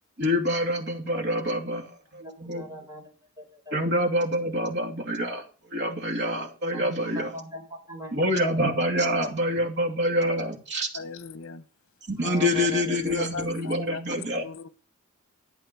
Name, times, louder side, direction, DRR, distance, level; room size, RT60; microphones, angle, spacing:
voice 1, 0.2-2.7 3.7-7.3 8.1-10.9 12.1-14.4, equal, 55° right, 2.6 m, -26 dB
voice 2, 2.1-3.1 3.4-3.8 6.7-8.5 9.2-9.3 12.2-13.6 13.9-14.0, right 1 dB, 15° right, 4.8 m, -41 dB
voice 3, 10.9-11.6 13.1-14.7, left 4 dB, 75° left, 1.0 m, -38 dB
12.0 x 8.8 x 6.1 m
head